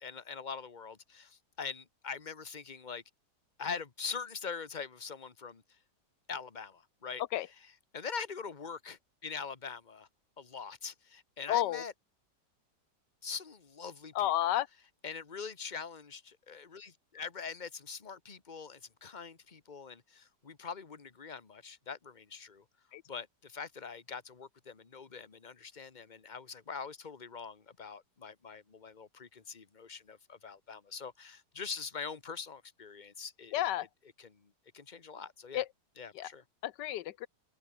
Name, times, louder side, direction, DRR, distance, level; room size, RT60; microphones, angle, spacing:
voice 1, 0.0-3.0 3.6-5.6 6.3-10.1 10.4-11.9 13.2-14.3 15.0-22.6 23.1-33.7 34.2-35.6 36.0-36.4, left 5 dB, 25° left, 1.6 m, -43 dB
voice 2, 11.5-11.8 14.1-14.7 22.9-23.0 33.5-33.9 35.5-35.6 36.2-36.3 36.6-37.3, left 13 dB, 80° left, 1.3 m, -31 dB
omnidirectional pair, 1.9 m